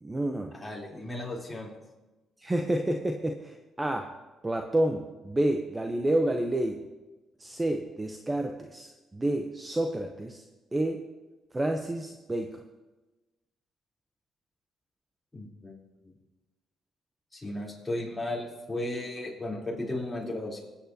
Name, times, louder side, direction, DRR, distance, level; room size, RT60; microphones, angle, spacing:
voice 1, 0.0-0.5 2.4-4.1 4.4-6.8 7.4-10.4 10.7-11.0 11.5-12.6, right 1 dB, 20° right, 4 dB, 0.8 m, -29 dB
voice 2, 0.5-1.7 15.3-15.8 17.3-20.6, left 1 dB, 10° left, -4 dB, 3.6 m, -35 dB
18.5 x 8.6 x 2.8 m, 1.1 s
cardioid pair, 80°, 0 cm